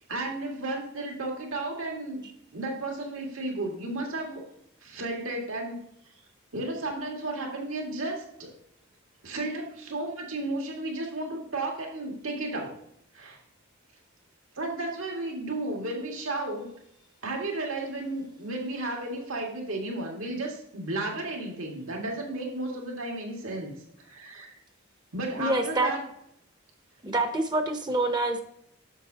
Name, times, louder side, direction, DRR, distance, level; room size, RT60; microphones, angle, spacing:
voice 1, 0.1-4.4 4.8-5.8 6.5-8.5 9.2-12.7 13.1-13.4 14.6-16.7 17.2-23.7 24.0-24.5 25.1-26.0, right 2 dB, 85° right, 1 dB, 1.9 m, -33 dB
voice 2, 25.4-25.9 27.0-28.4, right 2 dB, 20° right, 6 dB, 0.7 m, -26 dB
9.8 x 7.0 x 2.8 m, 0.73 s
head